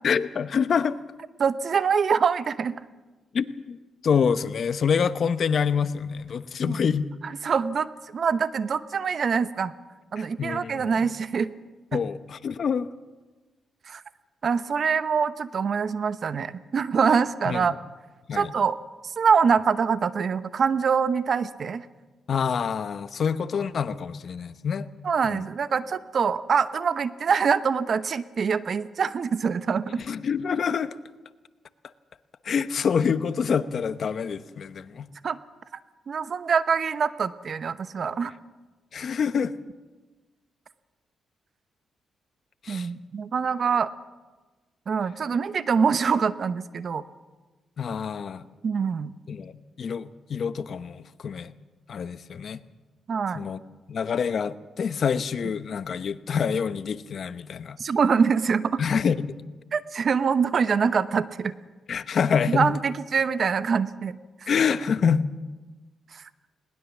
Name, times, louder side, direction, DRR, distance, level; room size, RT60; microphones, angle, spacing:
voice 1, 0.0-1.0 3.3-3.8 4.0-7.1 10.2-10.9 11.9-12.9 17.5-17.7 18.3-18.5 22.3-24.9 25.2-25.4 30.0-31.0 32.4-35.1 38.9-39.5 42.6-42.9 47.8-48.4 49.3-49.5 49.8-51.5 51.9-52.6 53.3-53.6 53.9-57.8 58.8-59.3 61.9-62.7 64.5-65.2, left 6 dB, 60° left, 13 dB, 0.9 m, -26 dB
voice 2, 1.4-2.7 6.6-6.7 7.2-9.7 10.1-11.5 11.9-12.0 13.9-14.0 14.4-17.7 18.3-18.8 19.0-21.9 25.0-30.0 35.2-35.4 36.1-38.3 42.7-43.9 44.9-47.0 48.6-49.1 53.1-53.5 57.8-58.8 59.7-61.5 62.5-64.2 66.1-66.3, right 6 dB, 55° right, 13 dB, 0.9 m, -24 dB
20.5 x 19.5 x 7.3 m, 1.3 s
cardioid pair, 80°, 0 cm